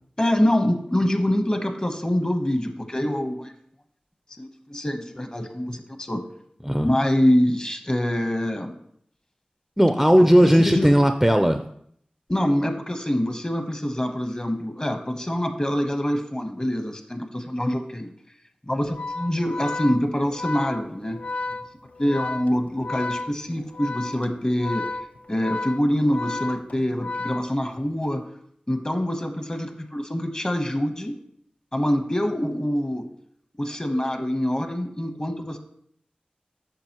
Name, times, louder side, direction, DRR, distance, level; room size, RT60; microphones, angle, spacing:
voice 1, 0.2-3.5 4.4-6.2 6.8-8.7 10.4-10.9 12.3-18.1 18.7-21.2 22.0-24.8 25.3-28.2 28.7-31.2 31.7-33.1 33.6-35.6, left 1 dB, 30° left, 6 dB, 1.0 m, -25 dB
voice 2, 9.8-11.6, equal, 5° right, 7 dB, 0.4 m, -17 dB
Organ, 18.8-28.0, left 3 dB, 60° left, 0.4 m, -33 dB
8.8 x 6.2 x 2.9 m, 0.67 s
wide cardioid pair, 55°, 3 cm